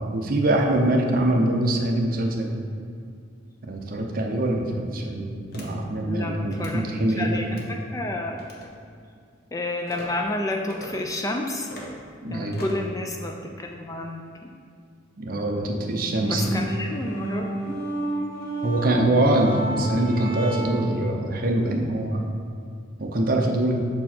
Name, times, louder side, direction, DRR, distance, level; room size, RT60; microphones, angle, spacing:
voice 1, 0.0-2.6 3.6-7.4 12.2-12.6 15.2-16.6 18.6-22.3 23.0-23.9, right 1 dB, 45° right, 1 dB, 0.6 m, -24 dB
sound 1, 5.5-5.7 6.5-6.8 7.4-7.7 8.4-8.7 9.9-10.1 10.7-10.9 11.6-11.9 12.5-12.9, left 1 dB, 50° left, 0.9 m, -40 dB
voice 2, 6.1-6.8 7.2-8.4 9.5-11.7 12.3-14.5 16.3-17.8, left 2 dB, 15° left, 2 dB, 0.3 m, -30 dB
sound 2, 15.9-21.0, right 1 dB, 80° left, 1.4 m, -31 dB
6.1 x 4.4 x 4.3 m, 2.3 s
head